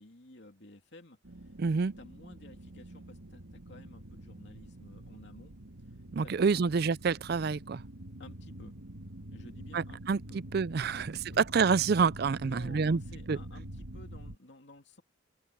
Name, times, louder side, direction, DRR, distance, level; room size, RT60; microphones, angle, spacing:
voice 1, 0.0-1.5 2.0-5.5 6.2-6.7 8.2-8.8 9.3-10.0 10.3-10.4 10.9-11.4 12.4-15.0, left 2 dB, 60° left, 2.9 m, -54 dB
sound 1, 1.2-14.4, right 1 dB, 80° right, 2.0 m, -46 dB
voice 2, 1.6-1.9 6.1-7.8 9.7-13.0 13.3-13.4, right 5 dB, 50° right, 0.4 m, -28 dB
open air
head